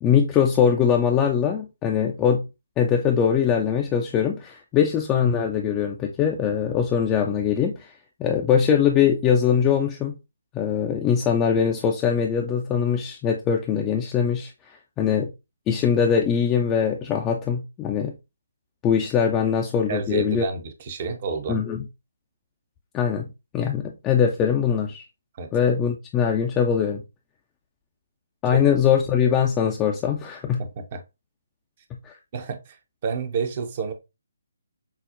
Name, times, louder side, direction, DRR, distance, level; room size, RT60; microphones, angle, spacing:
voice 1, 0.0-2.5 2.8-7.9 8.2-10.2 10.5-15.3 15.7-18.2 18.8-20.5 21.5-21.8 22.9-23.3 23.5-25.0 25.5-27.0 28.4-30.6 32.0-32.2, left 7 dB, 15° left, 0.4 m, -22 dB
voice 2, 19.9-21.7 25.3-25.5 28.5-28.6 30.6-31.0 32.3-32.8 33.0-33.9, right 5 dB, 35° right, 0.7 m, -29 dB
5.7 x 2.0 x 2.6 m
figure-of-eight pair, 140°, 0 cm